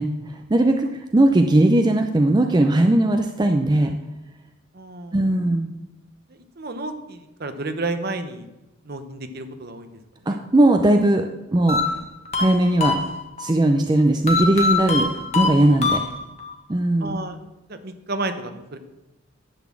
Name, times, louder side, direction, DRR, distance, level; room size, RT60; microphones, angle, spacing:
voice 1, 0.0-3.9 5.1-5.7 10.3-11.8 12.4-13.0 13.4-15.1 15.3-16.0 16.7-17.2, right 1 dB, 20° right, 5 dB, 0.5 m, -19 dB
voice 2, 4.7-5.3 6.3-8.5 8.8-9.9 10.2-10.4 17.0-17.4 17.7-18.8, right 2 dB, 50° right, 9 dB, 0.8 m, -31 dB
sound 1, 11.7-13.5 14.3-16.5, left 3 dB, 35° left, 1.2 m, -24 dB
10.5 x 4.1 x 7.4 m, 1.0 s
head